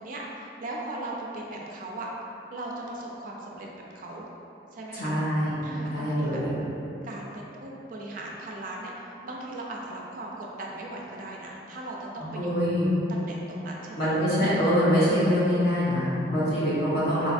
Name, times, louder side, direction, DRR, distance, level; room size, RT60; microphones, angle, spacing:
voice 1, 0.0-2.1 2.5-3.7 3.9-4.2 4.7-5.2 5.6-6.4 7.0-12.6 13.1-14.2, right 2 dB, 45° right, -2 dB, 0.3 m, -38 dB
voice 2, 4.9-5.5 5.9-6.5 12.4-12.9 14.0-17.3, equal, 55° left, -9 dB, 0.8 m, -24 dB
3.7 x 2.5 x 2.4 m, 2.9 s
head